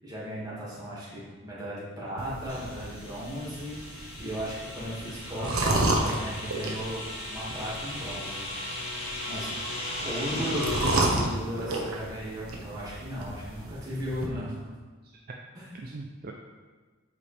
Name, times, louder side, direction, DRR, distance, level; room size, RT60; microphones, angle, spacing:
voice 1, 0.0-7.0 7.3-8.5 9.3-9.5 10.0-14.7 15.5-15.7, equal, 20° right, -7 dB, 1.9 m, -36 dB
sound 1, 2.2-14.3, right 2 dB, 85° right, 1.0 m, -33 dB
sound 2, 2.5-11.2, left 1 dB, 30° left, 1.5 m, -36 dB
voice 2, 10.9-11.4 14.3-14.5 15.8-16.3, right 3 dB, 45° right, 1 dB, 0.5 m, -36 dB
8.2 x 5.0 x 3.3 m, 1.4 s
head